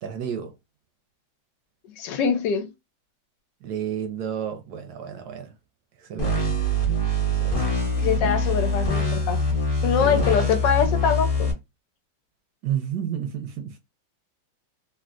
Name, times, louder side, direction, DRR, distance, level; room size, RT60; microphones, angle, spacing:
voice 1, 0.0-0.5 3.6-5.5 6.0-6.4 7.3-7.7 10.0-10.7 12.6-13.8, right 9 dB, 70° right, 1.0 m, -31 dB
voice 2, 2.0-2.7 8.0-9.4 9.8-11.5, left 7 dB, 75° left, 1.2 m, -23 dB
sound 1, 6.2-11.5, left 1 dB, 35° left, 1.0 m, -24 dB
3.3 x 2.6 x 2.4 m
omnidirectional pair, 2.0 m